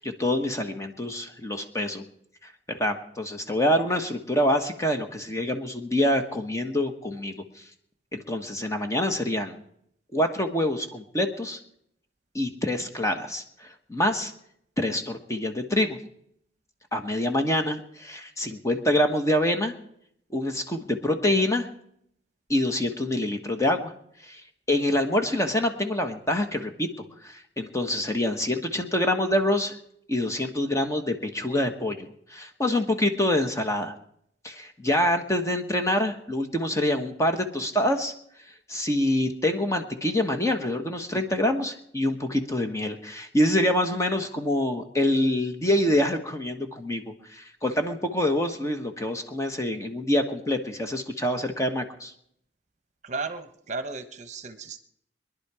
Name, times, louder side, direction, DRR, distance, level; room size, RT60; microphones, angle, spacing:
voice 1, 0.0-2.0 2.4-7.7 8.1-9.6 10.1-11.6 12.3-14.3 14.8-16.0 16.9-19.7 20.3-21.7 22.5-23.9 24.2-24.4 24.7-26.9 27.2-29.8 30.1-33.9 34.4-38.1 38.7-52.1, left 1 dB, 15° left, 5 dB, 1.3 m, -26 dB
voice 2, 53.0-54.8, right 4 dB, 40° right, 9 dB, 1.0 m, -34 dB
23.0 x 11.0 x 4.9 m, 0.71 s
head